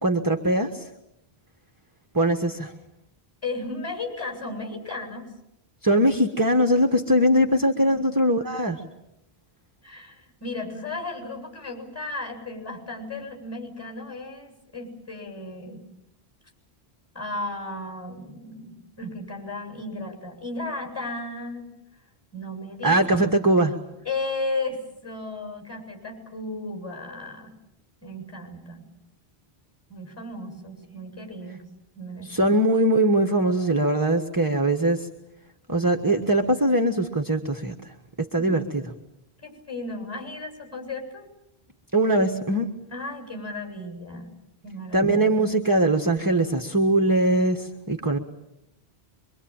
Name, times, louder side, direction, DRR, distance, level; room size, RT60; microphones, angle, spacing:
voice 1, 0.0-0.9 2.1-2.7 5.8-8.8 22.8-23.8 32.2-35.1 35.7-37.7 38.2-38.9 41.9-42.7 44.9-48.2, right 1 dB, 20° right, 6 dB, 1.4 m, -21 dB
voice 2, 3.4-5.3 7.7-8.0 9.8-15.9 17.1-21.7 22.3-23.0 24.0-27.5 28.0-28.9 29.9-31.6 32.0-32.5 38.4-38.6 39.4-41.2 42.9-44.4 44.6-45.2, left 2 dB, 15° left, 3 dB, 7.8 m, -35 dB
25.5 x 24.5 x 8.9 m, 0.86 s
omnidirectional pair, 1.1 m